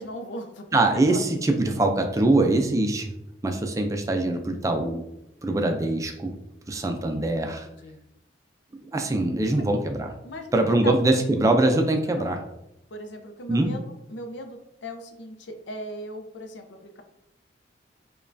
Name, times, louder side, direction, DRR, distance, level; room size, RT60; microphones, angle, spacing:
voice 1, 0.0-1.2 1.5-1.6 7.5-8.0 9.5-9.6 10.2-10.6 10.8-11.2 12.2-12.4 12.9-13.8 14.1-17.0, equal, 85° left, 6 dB, 0.5 m, -38 dB
voice 2, 0.7-3.1 3.4-5.0 5.4-6.3 6.7-7.7 8.9-10.1 10.5-12.4 13.5-13.7, right 2 dB, 20° right, 5 dB, 0.3 m, -23 dB
5.2 x 2.2 x 2.5 m, 0.88 s
head